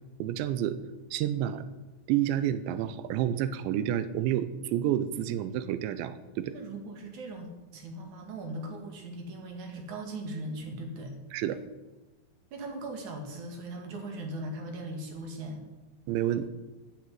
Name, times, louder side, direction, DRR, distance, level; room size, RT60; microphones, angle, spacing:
voice 1, 0.2-0.8 1.1-1.6 2.1-6.5 11.3-11.6 16.1-16.5, right 11 dB, 85° right, 12 dB, 3.1 m, -29 dB
voice 2, 6.5-11.1 12.5-15.6, right 1 dB, 50° right, 3 dB, 2.8 m, -39 dB
12.5 x 7.7 x 9.8 m, 1.1 s
omnidirectional pair, 5.3 m